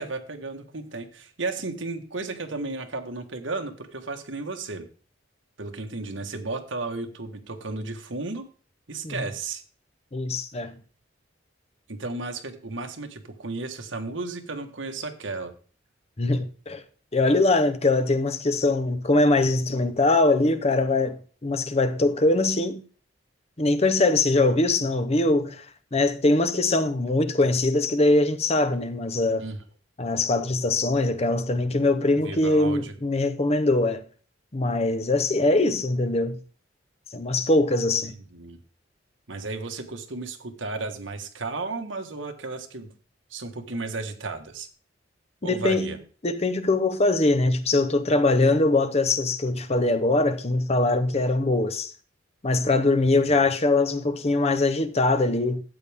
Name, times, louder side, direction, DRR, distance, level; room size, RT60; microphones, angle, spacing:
voice 1, 0.0-4.9 5.6-8.5 8.9-9.6 11.9-15.5 29.4-29.6 32.2-32.9 38.3-38.6 39.3-42.9 43.3-44.7 45.4-46.0 53.1-53.5, right 3 dB, 90° right, 1.6 m, -34 dB
voice 2, 10.1-10.8 16.2-16.8 17.1-22.8 23.6-25.7 25.9-29.4 30.0-34.0 34.5-36.4 37.1-38.1 45.4-45.9 46.2-51.9 52.4-55.6, left 2 dB, 35° left, 0.8 m, -22 dB
12.5 x 8.5 x 3.6 m
head